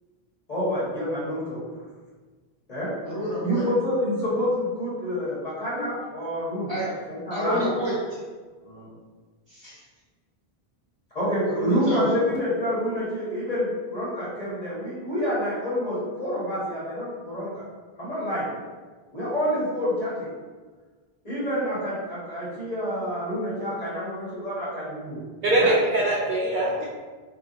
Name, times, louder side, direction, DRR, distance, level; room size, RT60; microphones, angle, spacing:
voice 1, 0.5-1.6 2.7-2.9 3.4-6.7 7.1-7.6 8.7-8.9 11.1-17.7 18.0-18.5 19.1-20.3 21.2-25.2 25.5-25.8, equal, 40° left, -10 dB, 1.5 m, -27 dB
voice 2, 3.0-3.6 6.7-6.9 7.3-8.2 9.5-9.8 11.5-12.1, equal, 25° right, -9 dB, 1.1 m, -29 dB
voice 3, 25.4-26.8, right 1 dB, 60° right, -4 dB, 0.6 m, -22 dB
3.9 x 2.6 x 2.7 m, 1.4 s
omnidirectional pair, 1.0 m